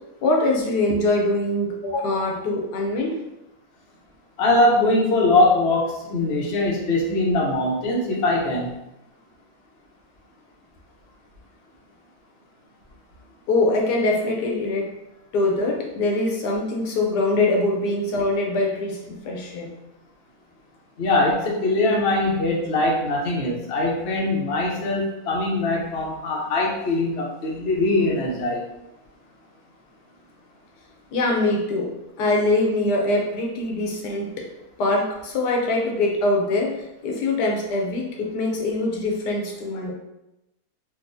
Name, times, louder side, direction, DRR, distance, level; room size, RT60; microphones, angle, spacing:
voice 1, 0.2-3.2 13.5-14.9 15.3-19.7 31.1-31.9 32.2-34.5 34.8-36.8 37.0-39.9, left 2 dB, 85° left, 0 dB, 1.3 m, -23 dB
voice 2, 4.4-8.7 21.0-28.6, left 2 dB, 55° left, -2 dB, 0.8 m, -22 dB
3.8 x 2.4 x 2.6 m, 0.91 s
omnidirectional pair, 1.7 m